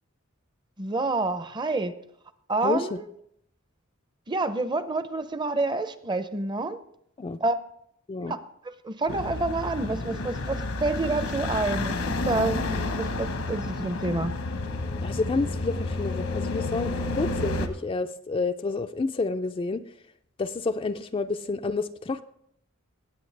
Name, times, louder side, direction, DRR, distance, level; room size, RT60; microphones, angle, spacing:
voice 1, 0.8-1.9 2.5-3.1 4.3-6.8 7.4-7.6 8.2-8.4 8.6-14.3, right 2 dB, 20° right, 12 dB, 0.6 m, -28 dB
sound 1, 9.1-17.7, left 2 dB, 75° left, 1.1 m, -30 dB
voice 2, 15.0-19.8 20.4-22.2, left 3 dB, 25° left, 8 dB, 0.3 m, -29 dB
18.5 x 7.8 x 3.3 m, 0.70 s
head